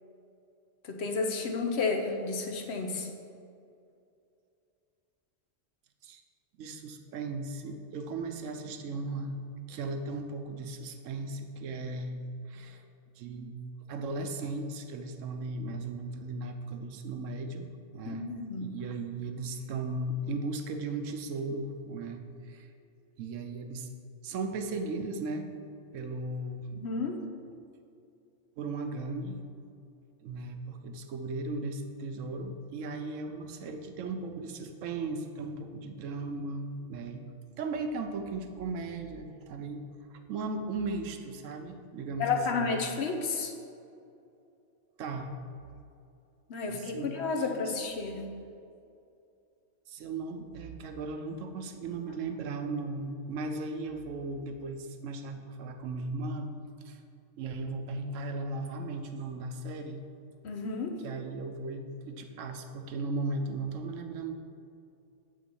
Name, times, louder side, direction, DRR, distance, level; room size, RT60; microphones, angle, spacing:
voice 1, 0.8-3.1 18.1-18.8 26.7-27.2 42.2-43.5 46.5-48.2 60.4-61.0, left 4 dB, 60° left, 3 dB, 1.0 m, -31 dB
voice 2, 6.6-9.3 9.7-12.2 12.5-12.8 13.2-13.6 13.9-18.3 18.6-22.7 23.2-23.9 24.2-25.5 25.9-26.7 28.6-29.4 30.2-37.2 37.6-39.8 40.3-42.7 45.0-45.3 46.7-47.1 49.9-56.5 56.8-57.0 57.4-60.0 61.0-64.3, right 3 dB, 80° right, 6 dB, 1.0 m, -36 dB
7.8 x 3.7 x 5.4 m, 2.5 s
omnidirectional pair, 1.3 m